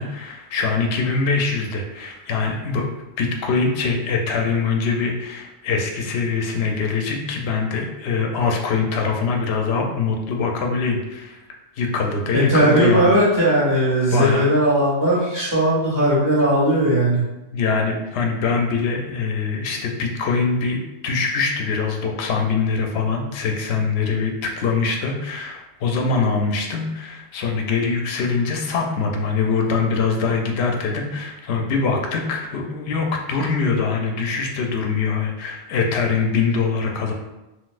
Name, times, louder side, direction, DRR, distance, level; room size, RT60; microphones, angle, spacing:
voice 1, 0.0-2.8 3.2-11.4 11.8-13.1 14.1-14.4 17.5-20.8 21.0-37.1, left 4 dB, 75° left, 2 dB, 0.8 m, -23 dB
voice 2, 12.3-17.2, right 1 dB, 15° right, -8 dB, 1.6 m, -18 dB
3.9 x 2.4 x 2.4 m, 1.0 s
omnidirectional pair, 1.1 m